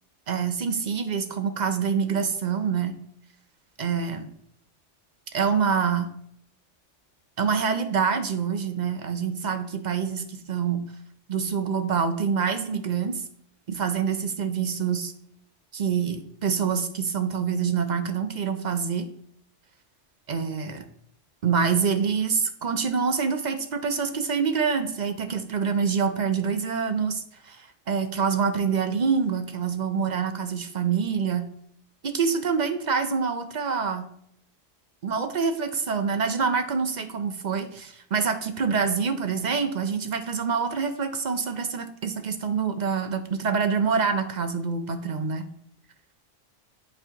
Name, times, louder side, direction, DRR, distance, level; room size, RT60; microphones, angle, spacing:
voice 1, 0.3-3.0 3.8-4.3 5.3-6.1 7.4-10.9 11.3-13.2 13.7-15.1 15.7-19.1 20.3-20.8 21.4-31.5 32.0-34.0 35.0-45.5, right 6 dB, 50° right, 8 dB, 0.6 m, -26 dB
10.5 x 4.2 x 2.8 m, 0.70 s
omnidirectional pair, 1.2 m